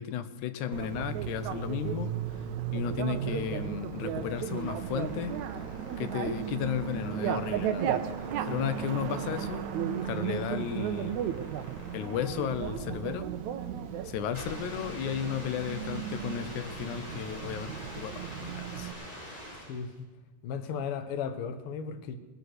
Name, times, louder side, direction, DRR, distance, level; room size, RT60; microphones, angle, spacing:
voice 1, 0.0-2.4 2.7-5.3 6.0-8.0 8.5-9.7 10.0-11.2 11.9-13.3 14.0-18.9, left 9 dB, 85° left, 11 dB, 2.2 m, -34 dB
Bicycle, 0.7-18.9, right 9 dB, 80° right, 2.2 m, -35 dB
sound 1, 4.0-19.9, equal, 10° left, 3.4 m, -46 dB
voice 2, 19.7-20.1 20.4-22.2, left 6 dB, 60° left, 7 dB, 1.7 m, -35 dB
20.0 x 7.9 x 6.5 m, 1.3 s
omnidirectional pair, 3.4 m